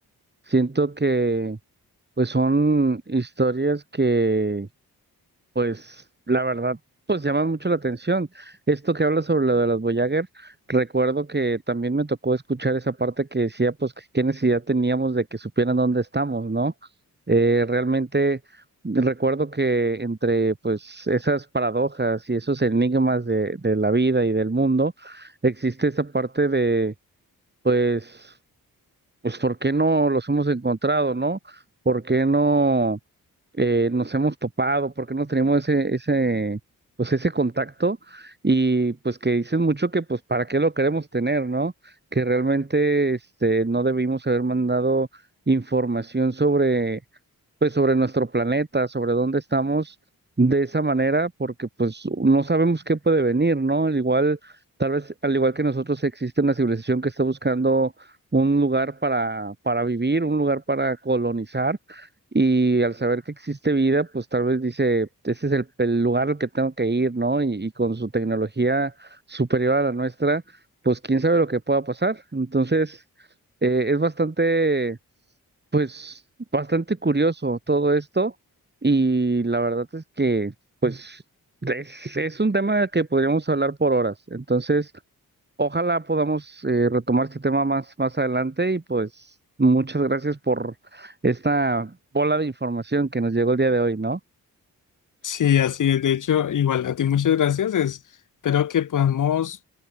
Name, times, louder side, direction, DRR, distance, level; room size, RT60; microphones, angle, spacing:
voice 1, 0.5-1.6 2.2-4.7 5.6-6.8 7.1-16.7 17.3-26.9 27.6-28.4 29.2-33.0 33.6-36.6 37.0-47.0 47.6-50.0 50.4-62.1 62.3-70.4 70.8-73.0 73.6-75.0 75.7-76.2 76.5-78.3 78.8-80.5 80.8-81.2 81.6-84.9 85.6-94.2, right 3 dB, 25° right, 2.5 m, -23 dB
voice 2, 95.2-98.0 98.4-99.6, left 9 dB, 55° left, 0.7 m, -21 dB
cardioid pair, 45°, 38 cm